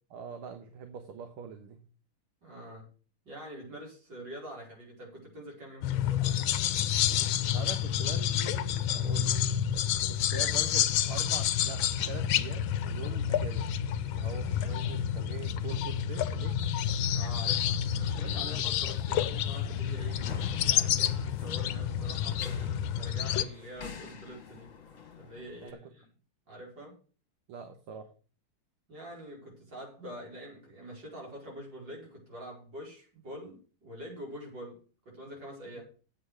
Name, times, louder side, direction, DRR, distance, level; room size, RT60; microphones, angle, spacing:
voice 1, 0.1-1.8 7.5-9.4 10.1-13.7 14.1-16.6 18.4-18.5 25.6-25.9 27.5-28.1, right 6 dB, 80° right, 7 dB, 1.9 m, -43 dB
voice 2, 2.4-2.9 3.3-6.4 17.1-22.4 23.0-24.7 25.2-26.1 26.5-27.0 28.9-35.8, equal, 55° right, -3 dB, 5.5 m, -45 dB
sound 1, 5.8-23.5, left 10 dB, 75° left, 1.4 m, -29 dB
sound 2, 12.9-25.7, left 4 dB, 40° left, 1.7 m, -49 dB
8.7 x 7.9 x 6.4 m, 0.38 s
omnidirectional pair, 2.4 m